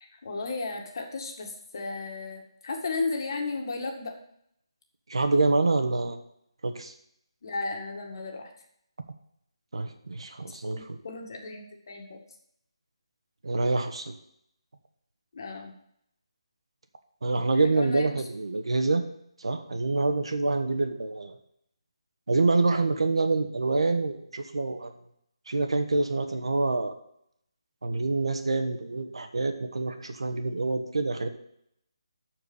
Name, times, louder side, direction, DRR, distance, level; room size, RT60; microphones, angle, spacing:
voice 1, 0.0-4.1 7.4-8.5 10.4-12.2 15.3-15.7 17.8-18.1, left 3 dB, 45° left, 2 dB, 1.9 m, -34 dB
voice 2, 5.1-6.2 6.6-6.9 9.7-11.0 13.4-14.1 17.2-19.0 19.4-21.3 22.3-24.9 25.5-26.9 27.8-31.3, right 3 dB, 80° right, 7 dB, 1.4 m, -26 dB
13.0 x 4.6 x 5.5 m, 0.73 s
hypercardioid pair, 165°, 3 cm